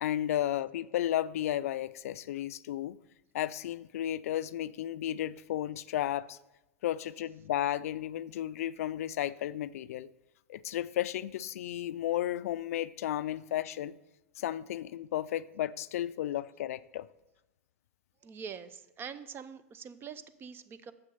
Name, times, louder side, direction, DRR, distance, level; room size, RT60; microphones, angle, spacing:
voice 1, 0.0-3.0 3.3-6.4 6.8-10.1 10.5-14.0 14.4-17.1, left 12 dB, 70° left, 16 dB, 0.3 m, -33 dB
voice 2, 18.2-20.9, right 6 dB, 25° right, 14 dB, 0.6 m, -44 dB
7.3 x 6.3 x 5.5 m, 0.97 s
hypercardioid pair, 105°, 8 cm